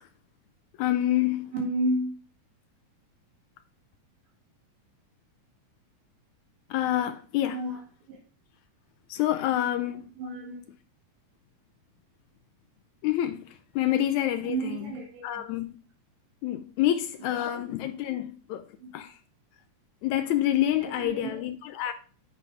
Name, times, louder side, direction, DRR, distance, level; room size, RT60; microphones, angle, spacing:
voice 1, 0.8-1.5 6.7-7.6 9.1-10.1 13.0-14.9 15.2-15.7 16.4-18.7 18.9-19.2 20.0-21.9, left 12 dB, 80° left, 1.8 m, -27 dB
voice 2, 1.5-2.1 7.5-7.8 8.1-8.2 10.2-10.6 14.4-15.4 17.5-17.6 18.8-18.9 20.8-21.4, right 1 dB, 85° right, 3.7 m, -31 dB
8.3 x 5.6 x 3.4 m
omnidirectional pair, 3.7 m